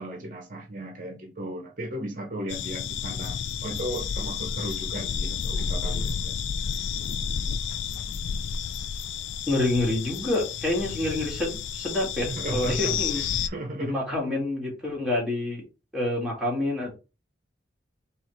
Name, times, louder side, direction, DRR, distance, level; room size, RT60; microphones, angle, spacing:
voice 1, 0.0-6.4 12.3-14.0, right 1 dB, 45° right, 0.8 m, -36 dB
sound 1, 2.5-13.5, left 7 dB, 85° left, 0.4 m, -31 dB
voice 2, 9.5-13.2 13.8-15.6 15.9-17.0, left 2 dB, ahead, 1.9 m, -27 dB
4.0 x 2.9 x 4.4 m
head